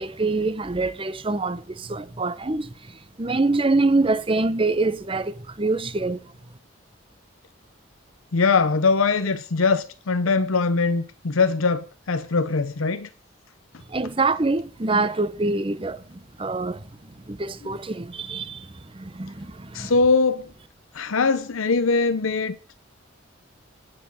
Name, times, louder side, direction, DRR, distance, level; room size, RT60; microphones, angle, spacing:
voice 1, 0.0-2.9 3.2-6.2 13.9-16.8 17.3-19.9, right 3 dB, 25° right, 0.7 m, -25 dB
voice 2, 8.3-13.1 19.7-20.5 20.9-22.6, left 4 dB, 85° left, 0.7 m, -22 dB
9.7 x 6.2 x 8.4 m
head